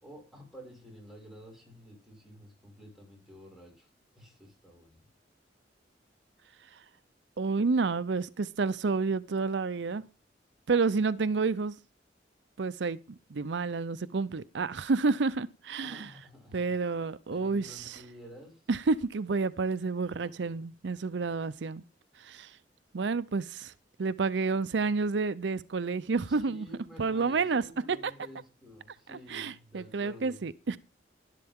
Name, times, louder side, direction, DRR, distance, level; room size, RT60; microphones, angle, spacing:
voice 1, 0.0-3.9 4.2-5.1 15.8-16.6 17.3-18.6 26.3-30.5, equal, ahead, 5.9 m, -50 dB
voice 2, 7.4-10.0 10.7-11.7 12.6-16.1 16.5-18.0 18.7-21.8 22.2-22.6 22.9-23.7 24.0-26.7 27.0-27.6 27.9-28.0 29.1-30.8, right 4 dB, 75° right, 0.6 m, -30 dB
12.5 x 11.5 x 3.6 m
head